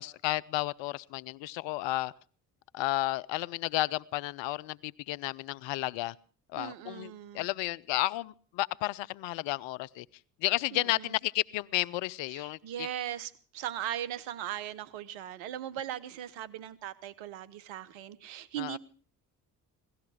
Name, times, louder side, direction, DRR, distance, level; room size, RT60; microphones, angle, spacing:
voice 1, 0.0-2.1 2.7-6.1 6.5-10.1 10.4-12.9 18.6-18.8, left 17 dB, 65° left, 20 dB, 0.6 m, -32 dB
voice 2, 6.6-7.5 10.7-11.1 12.3-18.8, right 11 dB, 70° right, 16 dB, 1.0 m, -39 dB
17.0 x 13.5 x 5.0 m, 0.42 s
hypercardioid pair, 50°, 48 cm